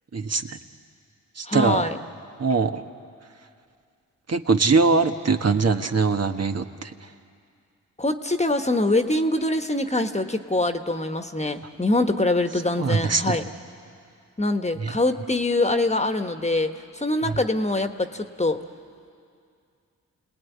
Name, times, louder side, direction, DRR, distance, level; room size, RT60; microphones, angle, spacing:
voice 1, 0.1-0.6 1.4-1.8 2.4-2.8 4.3-6.9 12.8-13.4 14.8-14.9 17.3-17.4, right 4 dB, 45° right, 6 dB, 1.5 m, -22 dB
voice 2, 1.5-2.0 8.0-13.4 14.4-18.6, left 2 dB, 20° left, 6 dB, 1.5 m, -24 dB
29.5 x 19.5 x 9.6 m, 2.4 s
supercardioid pair, 50°, 34 cm